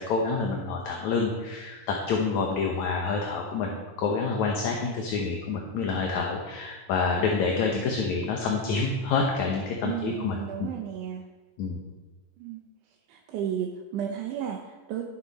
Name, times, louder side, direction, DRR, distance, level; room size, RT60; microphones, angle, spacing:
voice 1, 0.0-3.7 4.0-10.7 11.6-11.8, left 4 dB, 70° left, 0 dB, 2.3 m, -27 dB
voice 2, 9.8-11.3 12.4-12.6 13.1-15.1, right 9 dB, 75° right, 1 dB, 2.3 m, -33 dB
17.0 x 6.8 x 4.1 m, 1.2 s
omnidirectional pair, 3.7 m